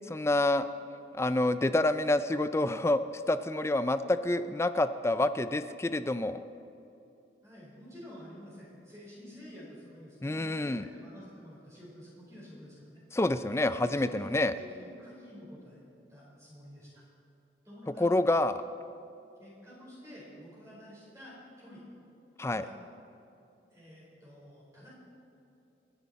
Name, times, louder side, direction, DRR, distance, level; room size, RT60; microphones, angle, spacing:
voice 1, 0.1-0.7 1.1-6.4 10.2-10.8 13.1-14.5 18.0-18.6 22.4-22.6, left 2 dB, 15° left, 12 dB, 0.4 m, -28 dB
voice 2, 7.4-13.0 13.8-15.8 16.1-17.0 17.6-18.1 19.4-21.8 22.5-22.7 23.7-24.9, equal, 15° right, -7 dB, 4.3 m, -50 dB
28.5 x 10.0 x 4.2 m, 2.8 s
head